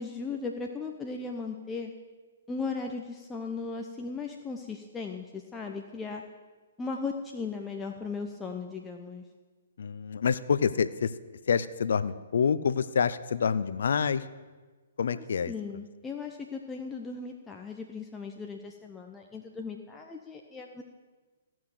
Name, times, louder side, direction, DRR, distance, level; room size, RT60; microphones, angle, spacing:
voice 1, 0.0-1.9 2.5-6.2 6.8-9.2 15.1-20.8, left 4 dB, 10° left, 2 dB, 0.8 m, -37 dB
voice 2, 9.8-11.1 11.5-14.3 15.0-15.5, left 6 dB, 65° left, 15 dB, 0.6 m, -27 dB
15.5 x 6.1 x 8.0 m, 1.3 s
figure-of-eight pair, 125°, 0 cm